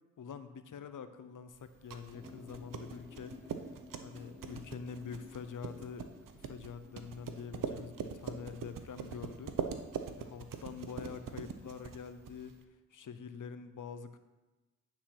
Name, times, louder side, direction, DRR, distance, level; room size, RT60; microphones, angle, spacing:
voice 1, 0.2-3.6 4.0-9.5 10.2-12.5 12.9-14.2, left 6 dB, 70° left, 10 dB, 0.7 m, -46 dB
sound 1, 1.6-12.6, right 6 dB, 75° right, 0.7 m, -43 dB
sound 2, 2.1-7.7, left 3 dB, ahead, 1.8 m, -54 dB
10.0 x 4.2 x 5.9 m, 1.1 s
cardioid pair, 50°, 33 cm